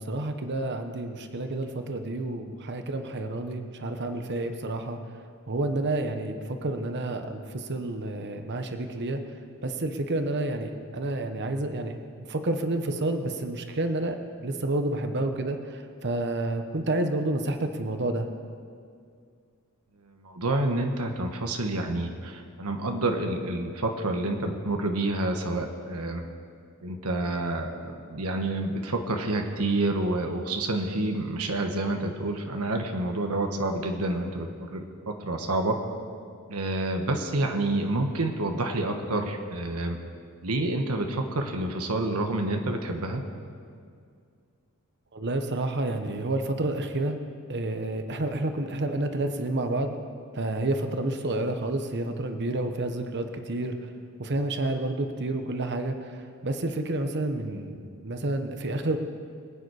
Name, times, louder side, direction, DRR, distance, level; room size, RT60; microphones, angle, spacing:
voice 1, 0.0-5.0 5.5-9.2 9.6-18.3 45.1-47.2 47.5-50.0 50.3-53.9 54.2-56.2 56.4-57.8 58.0-59.0, right 2 dB, 50° right, 6 dB, 1.1 m, -29 dB
voice 2, 20.1-26.2 26.8-35.8 36.5-40.0 40.4-43.2, right 2 dB, 80° right, 4 dB, 1.4 m, -28 dB
23.0 x 9.3 x 4.9 m, 2.2 s
head